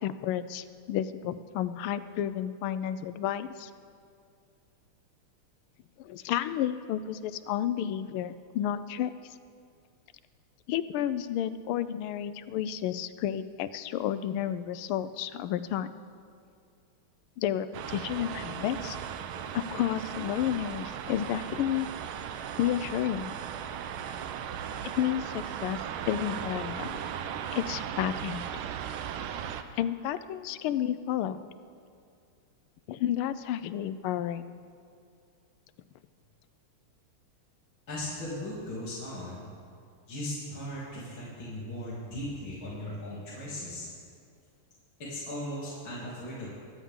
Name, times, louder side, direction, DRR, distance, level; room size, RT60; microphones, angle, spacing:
voice 1, 0.0-3.7 6.0-9.1 10.7-15.9 17.4-19.0 19.5-21.9 22.6-23.3 25.0-25.8 26.1-27.0 27.5-28.5 29.8-31.5 32.9-34.5, left 11 dB, 80° left, 12 dB, 1.4 m, -31 dB
sound 1, 17.7-29.6, right 8 dB, 80° right, 1.5 m, -37 dB
voice 2, 37.9-39.5 40.1-43.9 45.0-46.5, left 1 dB, 65° left, -9 dB, 3.5 m, -37 dB
22.5 x 8.6 x 3.7 m, 2.3 s
omnidirectional pair, 2.4 m